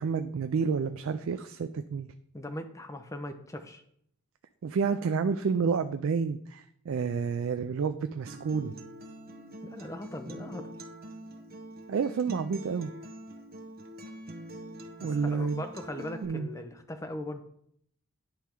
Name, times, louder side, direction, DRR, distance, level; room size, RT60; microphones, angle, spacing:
voice 1, 0.0-2.1 4.6-8.7 11.9-12.9 15.0-15.6 16.2-16.5, right 5 dB, 70° right, 9 dB, 0.3 m, -29 dB
voice 2, 2.3-3.8 9.6-10.7 15.0-17.4, left 1 dB, 15° left, 6 dB, 0.6 m, -39 dB
Acoustic guitar, 8.3-16.2, right 1 dB, 45° right, 0.8 m, -44 dB
10.5 x 3.5 x 4.4 m, 0.68 s
head